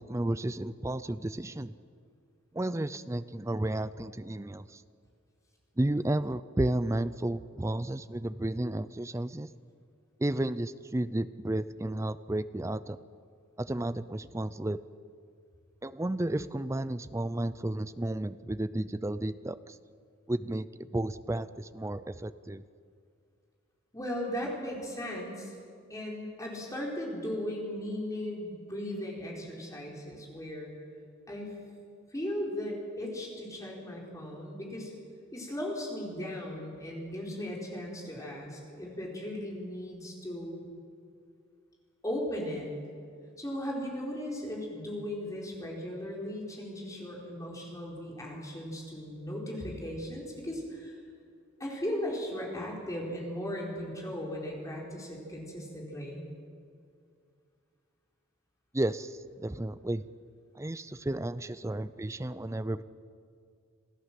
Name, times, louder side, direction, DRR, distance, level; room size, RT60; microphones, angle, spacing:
voice 1, 0.0-1.7 2.5-4.8 5.8-9.5 10.2-13.0 13.6-14.8 15.8-19.8 20.3-22.6 58.7-60.1 60.6-62.8, right 1 dB, 15° right, 14 dB, 0.4 m, -32 dB
voice 2, 23.9-25.6 25.9-30.7 31.3-31.6 32.1-34.9 35.3-40.6 42.0-42.7 43.4-51.0 51.6-56.2, left 1 dB, 15° left, -2 dB, 4.5 m, -37 dB
27.5 x 16.0 x 7.6 m, 2.3 s
head